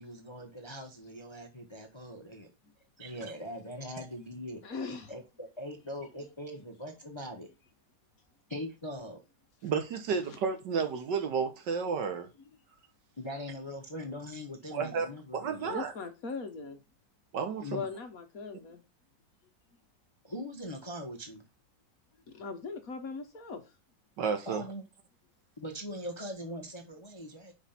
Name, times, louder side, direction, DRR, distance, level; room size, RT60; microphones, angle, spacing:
voice 1, 0.0-2.5 3.0-4.6 5.1-7.5 8.5-9.2 13.2-15.8 17.6-17.9 20.2-21.4 24.4-24.8 25.6-27.5, equal, 20° left, 0.8 m, -41 dB
voice 2, 4.6-5.1 15.6-16.8 17.7-18.8 22.3-23.6, left 4 dB, 55° left, 1.4 m, -39 dB
voice 3, 9.6-12.3 14.7-15.1 15.3-15.9 17.3-17.7 24.2-24.6, right 6 dB, 70° right, 1.7 m, -31 dB
5.1 x 5.0 x 5.7 m
omnidirectional pair, 2.0 m